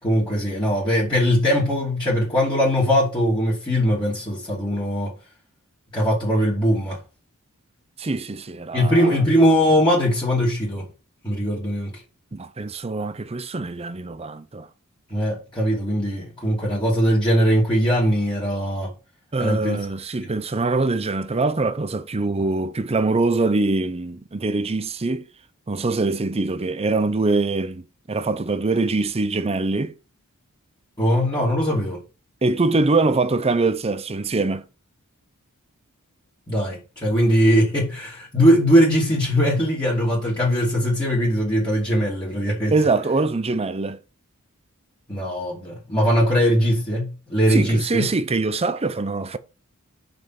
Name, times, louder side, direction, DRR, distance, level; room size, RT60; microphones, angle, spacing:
voice 1, 0.0-5.1 5.9-7.0 8.7-10.9 11.2-12.0 15.1-18.9 19.4-19.8 20.2-20.3 31.0-32.0 36.5-42.7 45.1-48.0, equal, 20° left, 2.7 m, -20 dB
voice 2, 8.0-9.1 12.3-14.7 19.3-25.3 25.7-29.9 32.4-34.6 42.7-44.0 47.5-49.4, right 3 dB, 30° right, 0.6 m, -23 dB
5.9 x 5.2 x 5.9 m
head